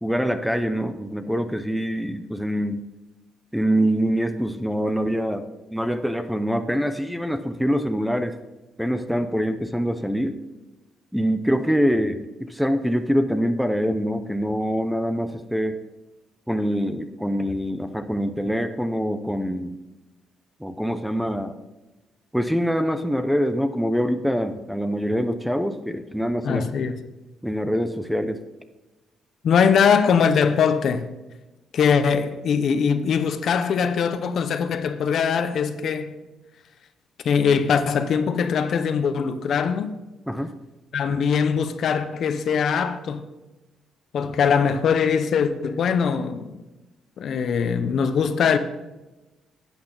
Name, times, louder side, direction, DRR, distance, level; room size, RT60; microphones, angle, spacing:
voice 1, 0.0-2.8 3.5-8.4 8.8-10.4 11.1-15.8 16.5-19.8 20.6-21.5 22.3-26.6 27.4-28.4 40.3-40.5, equal, ahead, 0.6 m, -24 dB
voice 2, 26.4-27.0 29.4-31.1 31.7-36.2 37.2-40.0 40.9-43.3 44.1-46.6 47.2-48.6, left 6 dB, 55° left, 0.8 m, -21 dB
11.5 x 8.9 x 4.0 m
cardioid pair, 150°, 0 cm